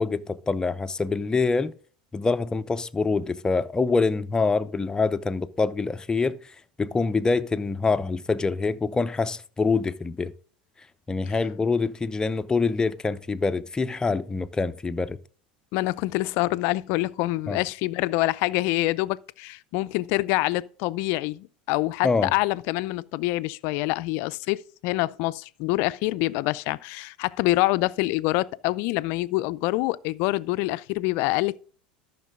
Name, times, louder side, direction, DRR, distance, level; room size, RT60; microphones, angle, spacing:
voice 1, 0.0-1.7 2.1-10.3 11.1-15.2 17.5-17.6 22.0-22.3, left 4 dB, 15° left, 0.7 m, -25 dB
voice 2, 15.7-31.6, left 19 dB, 60° left, 0.5 m, -26 dB
13.0 x 6.0 x 3.7 m
hypercardioid pair, 85°, 4 cm